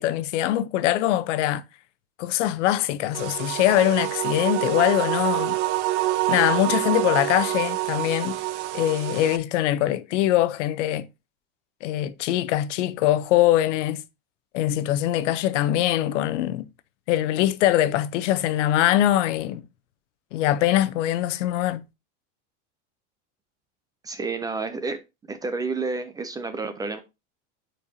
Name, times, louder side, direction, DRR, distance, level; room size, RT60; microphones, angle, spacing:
voice 1, 0.0-1.6 2.2-5.6 6.3-8.4 8.7-11.1 11.8-14.0 14.5-16.7 17.1-19.6 20.3-21.8, left 13 dB, 90° left, 0.8 m, -22 dB
sound 1, 3.1-9.4, right 16 dB, 75° right, 0.8 m, -27 dB
voice 2, 24.0-25.0 25.3-27.0, right 4 dB, 10° right, 0.3 m, -30 dB
9.8 x 4.5 x 2.7 m
supercardioid pair, 150°, 35 cm